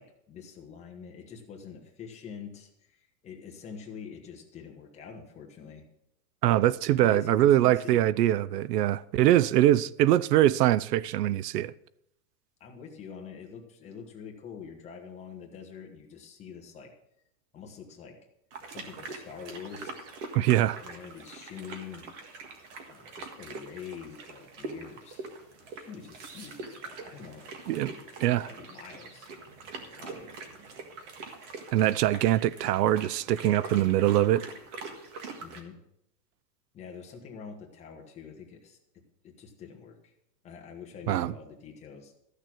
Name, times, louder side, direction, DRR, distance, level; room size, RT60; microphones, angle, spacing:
voice 1, 0.0-5.8 6.9-8.0 9.3-9.5 12.6-16.9 17.5-18.2 18.7-19.9 20.8-22.1 22.9-25.3 25.7-28.2 28.4-29.3 30.0-30.4 35.4-35.8 36.7-38.8 39.2-40.1 40.4-42.1, left 6 dB, 15° left, 1.1 m, -45 dB
voice 2, 6.4-11.7 20.3-20.8 27.7-27.9 28.2-28.5 31.7-34.4 41.1-41.3, right 13 dB, 80° right, 0.6 m, -23 dB
sound 1, 18.5-35.6, right 3 dB, 45° right, 1.8 m, -43 dB
13.5 x 6.6 x 6.1 m
supercardioid pair, 170°, 48 cm